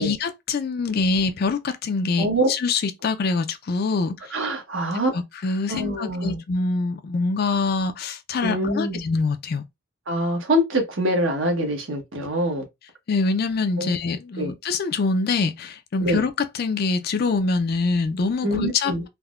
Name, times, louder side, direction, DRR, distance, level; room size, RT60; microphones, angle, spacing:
voice 1, 0.0-4.3 5.1-9.6 13.1-19.1, left 4 dB, 50° left, 0.4 m, -25 dB
voice 2, 2.2-2.5 4.3-5.1 5.7-6.4 8.4-9.0 10.1-12.6 13.8-14.0 14.4-14.5 16.0-16.2 18.4-19.0, equal, 70° right, 1.0 m, -24 dB
3.4 x 2.1 x 2.3 m
head